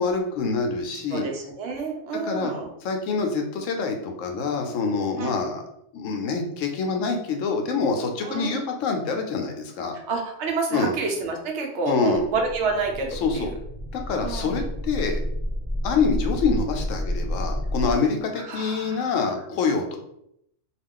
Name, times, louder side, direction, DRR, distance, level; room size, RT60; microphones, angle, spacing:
voice 1, 0.0-1.3 2.2-2.5 2.8-5.6 5.9-10.0 10.7-10.9 11.9-12.2 13.2-13.5 13.9-15.2 15.8-20.0, left 4 dB, 80° left, 4 dB, 0.9 m, -26 dB
voice 2, 1.1-2.7 5.2-5.4 8.2-8.6 9.9-13.6 14.2-14.7 18.3-19.2, right 4 dB, 70° right, 1 dB, 0.8 m, -29 dB
sound 1, 12.1-17.9, equal, 10° left, 0.3 m, -30 dB
2.3 x 2.3 x 3.6 m, 0.75 s
omnidirectional pair, 1.3 m